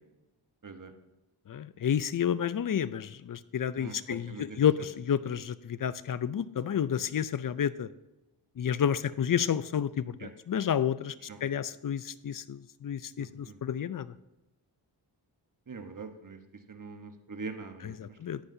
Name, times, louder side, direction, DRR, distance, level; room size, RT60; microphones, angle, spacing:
voice 1, 1.5-7.9 8.6-11.1 11.4-14.1 17.8-18.4, left 9 dB, 45° left, 16 dB, 0.6 m, -30 dB
voice 2, 3.8-4.6 10.2-10.3 11.3-11.4 13.5-13.6 15.7-16.4 16.7-18.0, right 4 dB, 45° right, 7 dB, 1.2 m, -42 dB
14.5 x 9.7 x 2.8 m, 0.98 s
cardioid pair, 50°, 44 cm